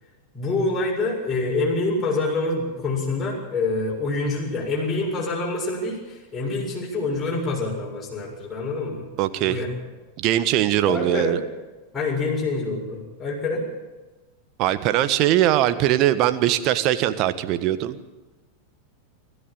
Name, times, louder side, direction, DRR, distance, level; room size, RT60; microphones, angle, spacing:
voice 1, 0.3-9.1 9.4-9.7 10.8-11.4 11.9-13.7, left 3 dB, 15° left, -5 dB, 7.3 m, -26 dB
voice 2, 9.2-9.6 10.2-11.4 14.6-18.0, right 13 dB, 40° right, 12 dB, 1.4 m, -21 dB
25.5 x 14.0 x 9.0 m, 1.2 s
figure-of-eight pair, 90°, 0 cm